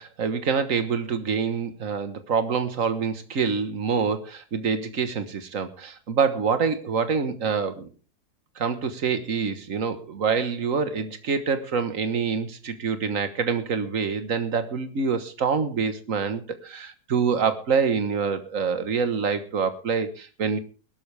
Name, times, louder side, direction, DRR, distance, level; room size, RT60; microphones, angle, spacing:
voice 1, 0.0-7.9 8.6-20.6, right 5 dB, 55° right, 10 dB, 1.7 m, -26 dB
20.5 x 12.0 x 3.4 m, 0.34 s
omnidirectional pair, 1.7 m